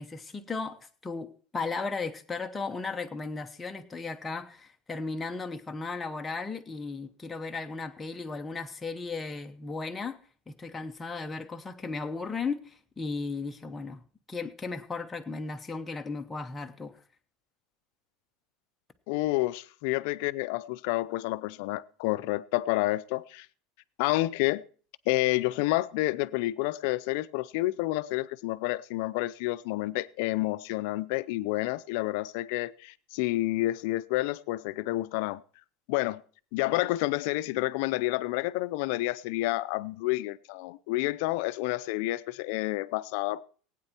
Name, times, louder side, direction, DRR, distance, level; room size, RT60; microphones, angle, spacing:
voice 1, 0.0-10.2 10.5-17.0, left 4 dB, 10° left, 0.9 m, -36 dB
voice 2, 19.1-23.5 24.0-24.6 25.1-35.4 35.9-36.2 36.5-43.4, left 18 dB, 60° left, 0.5 m, -29 dB
16.5 x 9.1 x 4.4 m
supercardioid pair, 160°, 0 cm